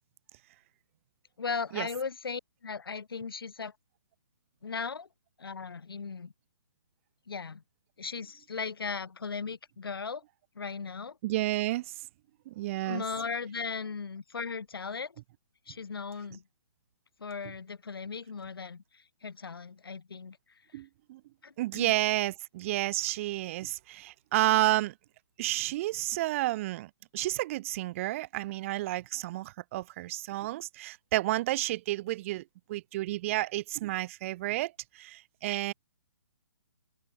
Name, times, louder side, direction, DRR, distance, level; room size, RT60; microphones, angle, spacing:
voice 1, 1.4-3.7 4.6-5.1 5.4-6.3 7.3-7.6 8.0-10.2 10.6-11.2 12.8-15.1 15.7-16.4 17.2-20.4 20.7-20.8 21.4-21.9, left 5 dB, 70° left, 4.3 m, -37 dB
voice 2, 11.2-11.9 12.5-13.0 20.7-21.2 21.6-24.9 25.4-32.4 32.7-35.7, right 17 dB, 35° right, 2.2 m, -31 dB
figure-of-eight pair, 140°, 13 cm